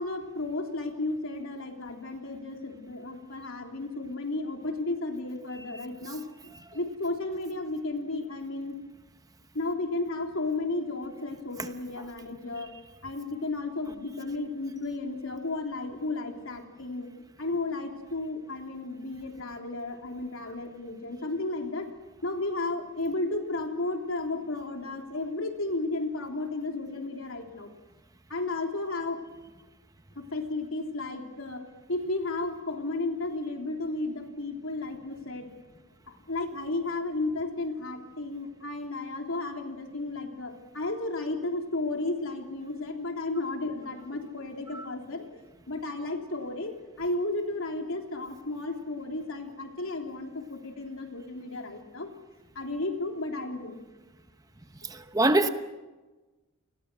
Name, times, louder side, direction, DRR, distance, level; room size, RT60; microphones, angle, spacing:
voice 1, 0.0-8.8 9.5-12.7 13.0-17.1 17.4-21.9 22.2-27.7 28.3-29.2 30.2-31.6 31.9-35.5 36.1-52.1 52.6-53.7, left 2 dB, 75° left, 3.4 m, -33 dB
voice 2, 54.9-55.5, right 2 dB, 15° right, 0.9 m, -23 dB
29.5 x 21.0 x 6.2 m
head